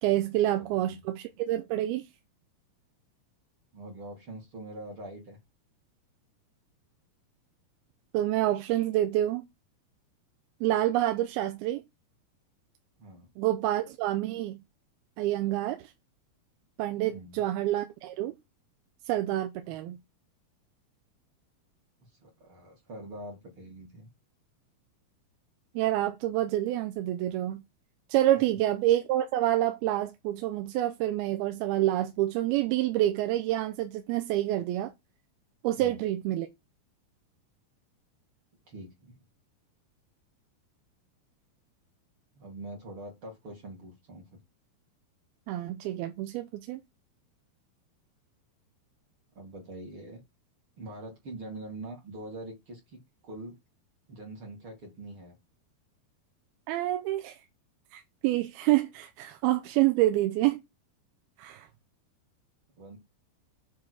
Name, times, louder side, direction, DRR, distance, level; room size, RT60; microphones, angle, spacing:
voice 1, 0.0-2.1 8.1-9.5 10.6-11.8 13.4-14.6 15.2-15.9 16.8-18.4 19.1-20.0 25.8-27.6 28.1-34.9 35.6-36.5 45.5-46.8 56.7-57.4 57.9-60.6 61.4-61.7, right 14 dB, 85° right, 2.7 m, -27 dB
voice 2, 0.6-1.0 3.7-5.4 13.0-13.3 17.1-17.4 22.0-24.1 35.8-36.0 38.7-39.2 42.4-44.4 49.3-50.2 50.8-53.6 54.1-55.4 62.8-63.0, right 1 dB, 40° right, 2.3 m, -44 dB
7.5 x 4.1 x 6.2 m
omnidirectional pair, 4.5 m